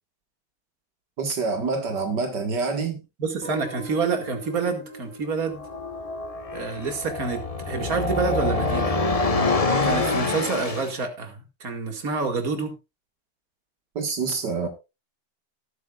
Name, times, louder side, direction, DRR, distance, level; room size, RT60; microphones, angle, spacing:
voice 1, 1.2-3.0 14.0-14.7, right 4 dB, 80° right, 2.4 m, -26 dB
voice 2, 3.2-5.6 6.5-9.0 9.8-12.7, right 4 dB, 55° right, 2.6 m, -28 dB
Guitar, 3.4-8.3, equal, 20° right, 5.2 m, -43 dB
sound 1, 5.5-10.9, left 3 dB, 25° left, 0.9 m, -26 dB
18.5 x 9.5 x 2.4 m
omnidirectional pair, 1.8 m